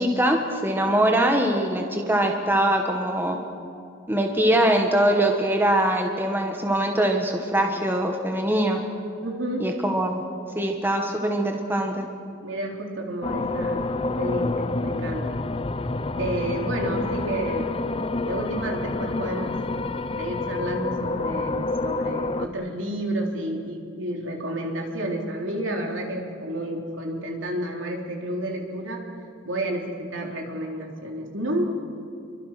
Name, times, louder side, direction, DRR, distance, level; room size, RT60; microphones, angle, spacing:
voice 1, 0.0-3.4 4.1-8.8 9.6-10.2 10.6-12.1, right 1 dB, 10° right, 3 dB, 1.6 m, -22 dB
voice 2, 9.2-9.7 12.4-14.6 14.8-15.4 16.2-17.7 18.2-19.6 20.2-29.0 29.4-31.6, right 1 dB, 70° right, 1 dB, 3.8 m, -30 dB
sound 1, 13.2-22.5, left 2 dB, 30° left, 0.6 m, -28 dB
27.5 x 23.5 x 6.0 m, 2.4 s
head